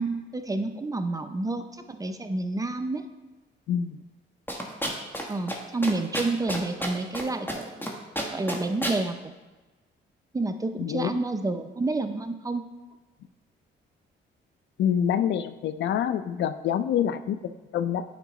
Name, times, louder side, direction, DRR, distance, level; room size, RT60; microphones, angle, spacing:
voice 1, 0.0-3.0 5.3-7.9 8.3-9.3 10.3-12.7, right 2 dB, 15° right, 7 dB, 0.5 m, -29 dB
voice 2, 3.7-4.0 10.8-11.2 14.8-18.0, left 9 dB, 65° left, 12 dB, 0.4 m, -26 dB
sound 1, 4.5-5.2 5.5-5.6 5.8-7.2 7.5-7.9 8.2-9.0, equal, 10° left, 1.2 m, -30 dB
9.1 x 4.6 x 3.1 m, 1.2 s
cardioid pair, 90°, 20 cm